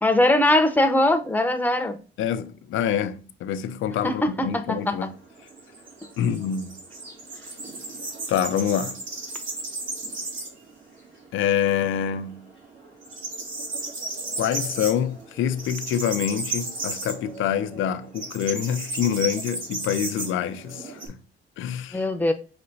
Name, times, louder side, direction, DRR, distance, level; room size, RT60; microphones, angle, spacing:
voice 1, 0.0-2.0 4.0-4.9 21.9-22.3, left 1 dB, 10° left, 0.7 m, -21 dB
voice 2, 2.2-5.2 6.2-6.8 8.3-9.0 11.3-12.5 14.4-21.2 21.6-22.1, left 9 dB, 80° left, 0.6 m, -26 dB
sound 1, 4.8-10.7 11.0-11.1 11.5-12.3 12.6-21.1, right 3 dB, 80° right, 2.0 m, -34 dB
5.9 x 2.9 x 2.6 m
cardioid pair, 90°, 20 cm